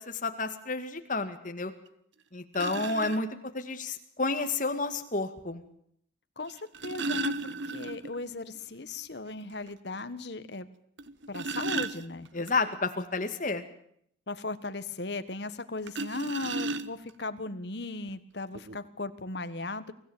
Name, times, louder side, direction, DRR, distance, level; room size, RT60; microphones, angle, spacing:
voice 1, 0.0-1.7 2.3-3.3 3.5-5.6 12.3-13.6, left 3 dB, 40° left, 7 dB, 2.2 m, -30 dB
sound 1, 1.9-2.0 2.5-3.2 4.6-4.7 6.5-8.2 8.5-8.6 9.1-9.2 9.7-9.8 11.0-12.5 15.9-17.2 18.1-18.2 18.5-18.8, right 3 dB, 70° right, 1.1 m, -34 dB
voice 2, 6.4-10.7 11.3-12.3 14.3-19.9, left 2 dB, 60° left, 12 dB, 1.5 m, -37 dB
24.0 x 15.5 x 9.1 m, 0.70 s
head